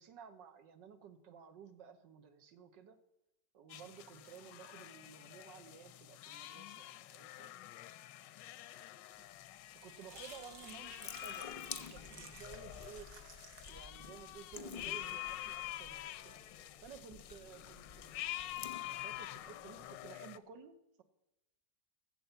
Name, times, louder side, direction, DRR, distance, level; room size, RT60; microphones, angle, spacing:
voice 1, 0.0-3.0 3.5-7.5 9.2-9.3 9.7-13.1 13.7-16.4 16.8-18.2 19.0-21.0, right 7 dB, 85° right, 9 dB, 1.7 m, -55 dB
sound 1, 3.7-20.4, left 15 dB, 85° left, 1.3 m, -47 dB
sound 2, 9.2-17.5, right 6 dB, 55° right, 1.4 m, -59 dB
Water tap faucet / Sink (filling or washing) / Drip, 10.3-20.1, left 6 dB, 50° left, 0.6 m, -52 dB
14.5 x 7.4 x 5.6 m, 0.94 s
omnidirectional pair, 1.9 m